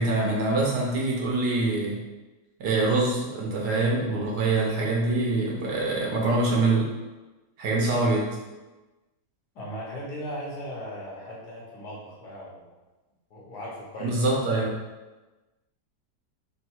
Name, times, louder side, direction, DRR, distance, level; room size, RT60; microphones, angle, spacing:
voice 1, 0.0-2.0 2.6-6.9 7.6-8.4 14.0-14.7, right 2 dB, 85° right, -3 dB, 1.6 m, -24 dB
voice 2, 9.6-12.7 13.3-14.2, equal, 80° left, -4 dB, 1.7 m, -38 dB
4.4 x 2.3 x 4.5 m, 1.2 s
omnidirectional pair, 1.7 m